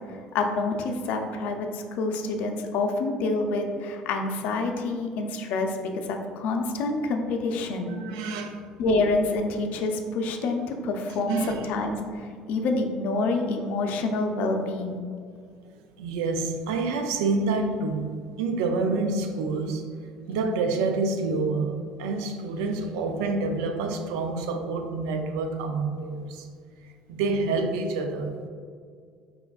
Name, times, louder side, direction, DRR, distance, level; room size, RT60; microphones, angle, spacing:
voice 1, 0.1-7.9 8.8-15.0, left 3 dB, 65° left, 4 dB, 0.5 m, -27 dB
voice 2, 7.9-8.6 11.3-11.5 16.0-19.8 20.3-26.5 27.1-28.5, right 3 dB, 80° right, 6 dB, 0.4 m, -28 dB
4.8 x 3.4 x 2.3 m, 2.1 s
hypercardioid pair, 75°, 3 cm